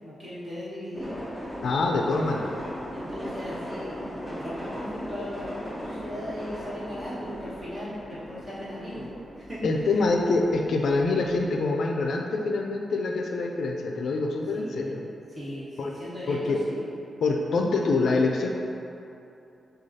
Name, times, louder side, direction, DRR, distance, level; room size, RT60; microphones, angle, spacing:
voice 1, 0.0-1.2 2.9-9.1 9.3-9.6 9.9-10.0 14.5-15.0 15.3-16.4 16.8-16.9, equal, 25° right, -10 dB, 1.4 m, -38 dB
sound 1, 0.9-11.6, equal, ahead, 0.5 m, -38 dB
voice 2, 1.6-2.6 9.6-15.0 15.8-15.9 16.3-16.6 17.2-18.5, left 3 dB, 70° left, 1 dB, 0.4 m, -25 dB
6.1 x 2.3 x 2.8 m, 2.7 s
wide cardioid pair, 110°, 0 cm